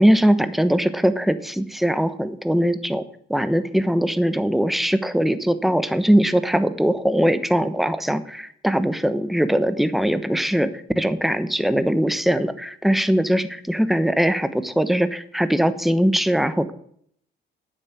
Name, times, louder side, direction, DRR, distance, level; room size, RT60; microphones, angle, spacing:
voice 1, 0.0-3.0 3.3-16.7, equal, ahead, 11 dB, 1.0 m, -21 dB
9.3 x 7.4 x 8.3 m, 0.65 s
cardioid pair, 90°, 20 cm